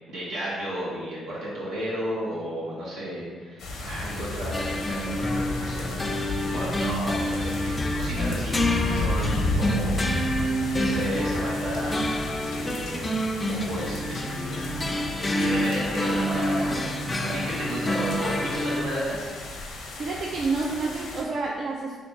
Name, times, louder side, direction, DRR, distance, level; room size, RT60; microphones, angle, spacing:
voice 1, 0.1-10.0 10.3-12.0 12.4-13.1 13.4-14.7 15.2-19.2, equal, 85° right, -8 dB, 1.5 m, -33 dB
sound 1, 3.6-21.2, left 2 dB, 80° left, 0.7 m, -33 dB
sound 2, 4.5-18.8, left 1 dB, 25° left, 0.4 m, -28 dB
voice 2, 20.0-22.0, right 3 dB, 55° right, -2 dB, 0.4 m, -29 dB
3.2 x 2.9 x 4.0 m, 1.5 s
cardioid pair, 90°, 0 cm